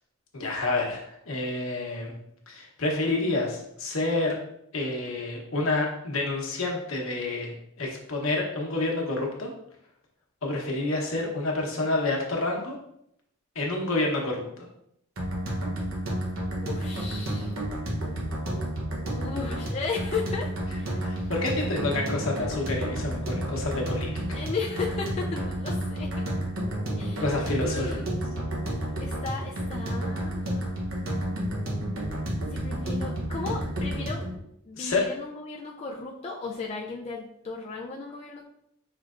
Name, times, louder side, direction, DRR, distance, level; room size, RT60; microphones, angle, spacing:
voice 1, 0.3-2.1 2.5-4.3 4.7-9.5 10.4-12.8 13.5-14.7 21.0-24.1 27.2-28.0 34.7-35.0, left 2 dB, 70° left, -1 dB, 1.0 m, -28 dB
sound 1, 15.2-34.4, right 1 dB, 75° right, 0.9 m, -31 dB
voice 2, 16.6-17.6 19.1-20.5 20.8-21.3 24.3-26.3 27.0-27.3 27.6-28.5 29.0-30.8 32.5-34.2 34.6-38.4, left 4 dB, 30° left, -2 dB, 0.4 m, -35 dB
5.4 x 3.2 x 2.5 m, 0.76 s
head